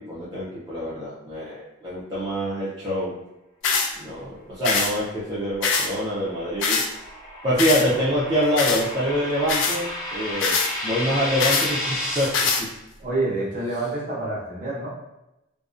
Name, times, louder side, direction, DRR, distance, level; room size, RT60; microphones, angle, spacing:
voice 1, 0.0-3.2 4.0-6.8 7.4-10.6 10.8-12.7, equal, 20° right, -9 dB, 0.4 m, -25 dB
sound 1, 3.6-3.9 4.6-4.9 5.6-5.9 6.6-6.9 7.6-7.8 8.6-8.8 9.5-9.8 10.4-10.7 11.4-11.7 12.3-12.6, left 4 dB, 60° left, 0.3 m, -22 dB
sound 2, 5.4-12.3, left 1 dB, 20° left, 0.9 m, -33 dB
voice 2, 13.0-14.9, right 2 dB, 40° right, -6 dB, 0.8 m, -27 dB
2.5 x 2.0 x 2.4 m, 0.91 s
head